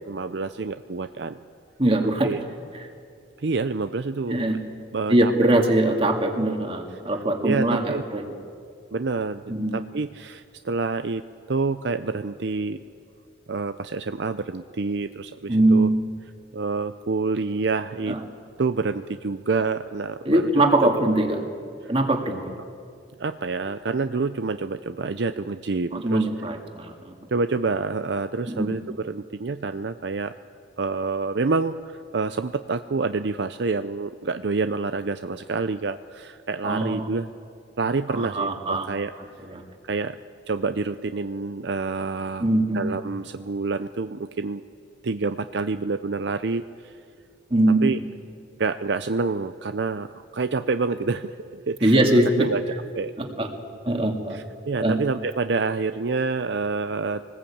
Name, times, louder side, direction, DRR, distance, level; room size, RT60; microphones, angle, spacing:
voice 1, 0.0-1.4 2.2-2.4 3.4-4.4 4.9-5.5 7.4-8.0 8.9-12.8 13.5-15.9 16.5-18.2 18.6-20.5 23.2-26.3 27.3-30.3 30.8-37.3 37.8-39.1 39.9-40.2 40.5-42.5 42.7-44.6 45.0-46.9 47.8-48.0 48.6-52.6 53.0-53.1 54.3-57.2, right 4 dB, 65° right, 10 dB, 0.6 m, -27 dB
voice 2, 1.8-2.3 4.3-4.6 5.1-8.4 9.5-9.8 15.5-15.9 18.1-18.2 20.2-21.4 21.9-22.4 25.9-27.1 28.5-28.8 36.6-37.1 38.1-38.9 39.4-39.6 42.4-42.8 47.5-47.9 51.8-52.5 53.2-53.5 53.8-54.4 54.8-55.0, right 1 dB, 30° right, 3 dB, 2.3 m, -22 dB
24.5 x 20.0 x 8.6 m, 2.4 s
head